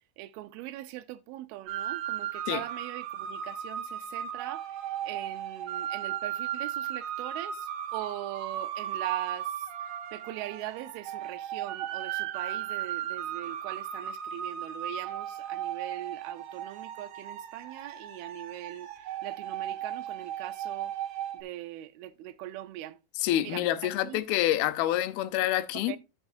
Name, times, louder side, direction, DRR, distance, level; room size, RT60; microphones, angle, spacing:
voice 1, 0.2-20.9 21.3-23.0 23.4-24.2 25.7-26.0, right 15 dB, 85° right, 2.6 m, -41 dB
sound 1, 1.7-21.4, right 10 dB, 65° right, 1.9 m, -36 dB
voice 2, 23.2-26.0, left 13 dB, 85° left, 2.6 m, -27 dB
13.5 x 6.5 x 2.5 m
omnidirectional pair, 4.3 m